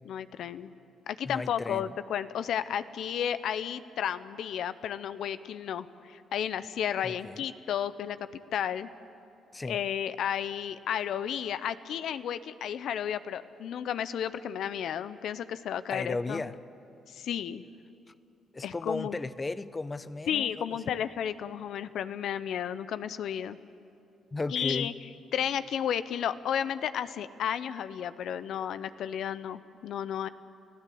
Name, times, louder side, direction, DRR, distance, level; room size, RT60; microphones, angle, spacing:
voice 1, 0.0-0.7 1.1-8.9 9.7-16.4 17.1-17.6 18.6-19.2 20.3-23.6 24.5-24.9 25.3-30.3, left 9 dB, 70° left, 13 dB, 0.7 m, -33 dB
voice 2, 1.2-1.9 7.0-7.4 9.5-9.8 15.9-16.6 18.5-20.9 24.3-24.9, left 3 dB, 20° left, 14 dB, 0.8 m, -35 dB
29.5 x 16.0 x 8.6 m, 2.7 s
cardioid pair, 110°, 0 cm